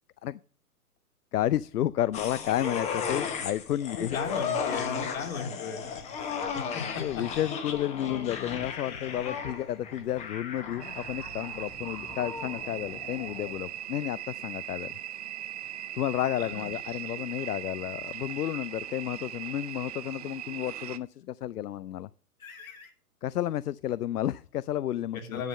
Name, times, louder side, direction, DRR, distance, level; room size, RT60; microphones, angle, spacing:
voice 1, 1.3-4.2 6.1-6.6 7.0-14.9 15.9-22.1 23.2-25.4, left 12 dB, 75° left, 19 dB, 0.6 m, -31 dB
sound 1, 2.1-13.7 14.0-14.1, left 6 dB, 15° left, 0.9 m, -35 dB
voice 2, 4.0-5.9 6.5-6.8 7.2-7.3 16.4-16.7 22.4-22.9 25.1-25.5, left 5 dB, 60° left, 4 dB, 2.9 m, -37 dB
sound 2, 10.8-21.0, right 11 dB, 25° right, 0.5 m, -39 dB
10.5 x 5.6 x 6.4 m, 0.41 s
hypercardioid pair, 135°, 46 cm